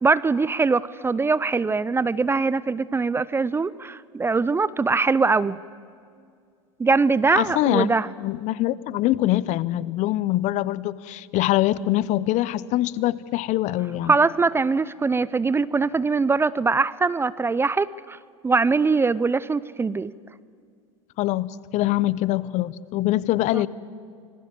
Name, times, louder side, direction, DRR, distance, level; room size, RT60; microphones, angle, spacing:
voice 1, 0.0-5.6 6.8-8.1 14.1-18.2 18.4-20.1 23.5-23.6, right 4 dB, 15° right, 19 dB, 0.5 m, -22 dB
voice 2, 7.4-7.9 8.2-14.1 21.2-23.7, left 15 dB, 45° left, 20 dB, 0.8 m, -24 dB
26.0 x 20.5 x 7.6 m, 2.2 s
hypercardioid pair, 85°, 16 cm